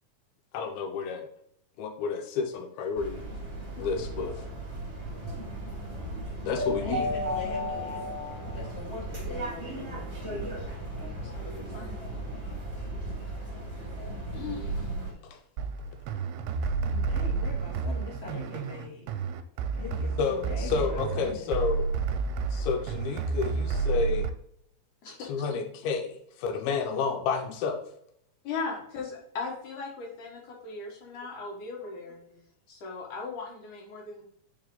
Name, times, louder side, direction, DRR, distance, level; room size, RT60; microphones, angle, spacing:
voice 1, 0.5-1.3 1.8-3.2 3.8-4.4 6.5-7.2 15.2-15.4 20.2-21.9 22.5-24.3 25.2-27.8, left 5 dB, 85° left, 5 dB, 2.6 m, -30 dB
sound 1, 3.0-15.1, right 1 dB, 20° right, 1.7 m, -35 dB
voice 2, 6.7-8.0 8.5-10.1 16.9-19.1 19.7-21.5, left 4 dB, 20° left, -5 dB, 2.3 m, -42 dB
voice 3, 11.1-12.0 14.3-14.8 25.0-25.5 28.4-32.2 32.7-34.2, left 4 dB, 60° left, -1 dB, 2.8 m, -38 dB
sound 2, 15.6-24.3, right 4 dB, 80° right, 2.3 m, -30 dB
8.2 x 5.0 x 3.9 m, 0.70 s
omnidirectional pair, 4.4 m